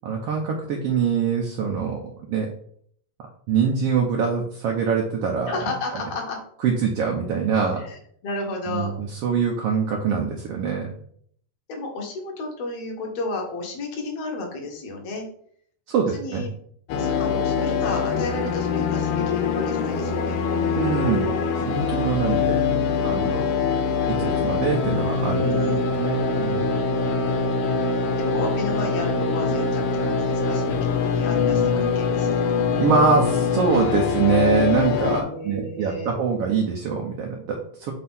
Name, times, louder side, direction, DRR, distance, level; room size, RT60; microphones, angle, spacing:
voice 1, 0.0-2.5 3.5-5.6 6.6-7.8 8.7-10.9 15.9-16.5 20.8-21.3 21.6-22.6 23.0-23.5 24.2-25.5 26.0-26.7 32.7-37.9, right 6 dB, 75° right, 0 dB, 1.4 m, -24 dB
voice 2, 5.5-6.4 7.8-9.0 11.7-15.3 16.1-16.5 17.0-20.4 25.4-25.9 28.2-32.5 35.2-36.2, left 2 dB, 60° left, 1 dB, 2.1 m, -32 dB
sound 1, 16.9-35.2, left 5 dB, 80° left, 2.3 m, -23 dB
6.1 x 2.8 x 5.4 m, 0.63 s
omnidirectional pair, 3.6 m